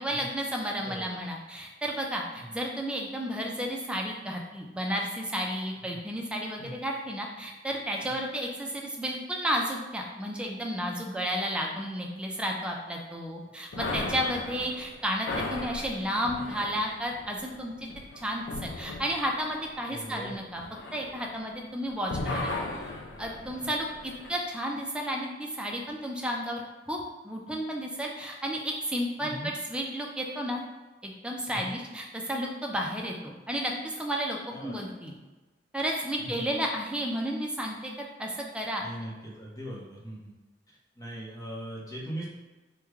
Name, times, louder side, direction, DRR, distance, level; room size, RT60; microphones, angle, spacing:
voice 1, 0.0-17.7 18.2-20.6 20.9-22.5 23.2-30.6 31.0-35.1 35.7-37.9 38.2-38.8, equal, 5° right, 0 dB, 0.4 m, -32 dB
voice 2, 0.8-1.2 2.3-2.6 5.9-6.0 6.6-6.8 8.0-8.1 19.9-20.4 23.5-23.8 29.2-29.5 31.5-31.7 34.5-34.8 36.2-36.5 38.8-40.3 40.9-42.3, equal, 20° left, -5 dB, 0.8 m, -40 dB
sound 1, 13.7-21.7 22.0-24.4, left 2 dB, 80° left, 0.4 m, -37 dB
3.1 x 2.2 x 3.5 m, 1.2 s
head